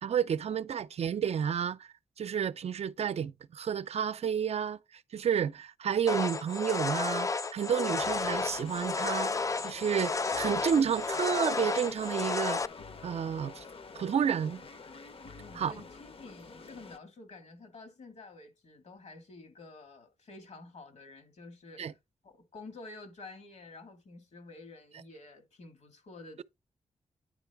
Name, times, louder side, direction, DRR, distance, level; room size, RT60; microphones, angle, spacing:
voice 1, 0.0-1.9 2.2-9.3 9.6-12.6 13.0-13.6 13.9-14.6 15.6-15.7 21.8-21.9, right 8 dB, 65° right, 0.5 m, -31 dB
sound 1, 6.1-12.7, left 4 dB, 30° left, 0.4 m, -32 dB
sound 2, 8.0-17.0, left 4 dB, 55° left, 0.8 m, -48 dB
voice 2, 15.4-22.0 22.2-26.4, left 3 dB, 75° left, 1.9 m, -50 dB
9.8 x 3.8 x 3.4 m
cardioid pair, 60°, 12 cm